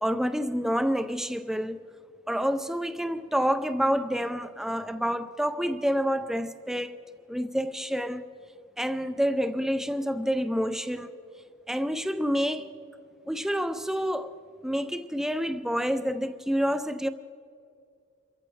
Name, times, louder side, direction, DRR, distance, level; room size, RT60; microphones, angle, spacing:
voice 1, 0.0-1.8 2.3-6.9 7.3-8.3 8.8-11.1 11.7-12.7 13.3-14.3 14.6-17.1, equal, ahead, 0.4 m, -28 dB
27.5 x 14.5 x 3.2 m
head